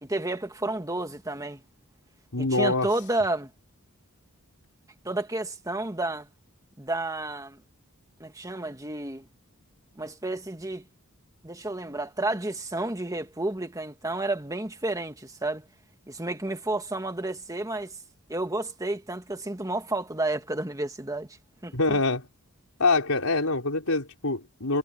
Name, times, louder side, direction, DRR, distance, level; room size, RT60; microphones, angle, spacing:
voice 1, 0.0-1.6 2.4-3.5 5.1-6.3 6.8-7.6 8.2-9.3 10.0-10.8 11.4-15.6 16.1-17.9 18.3-21.3 21.6-22.0, right 2 dB, 15° right, 1.8 m, -31 dB
voice 2, 2.3-2.9 21.7-22.3 22.8-24.8, left 3 dB, 75° left, 4.7 m, -25 dB
head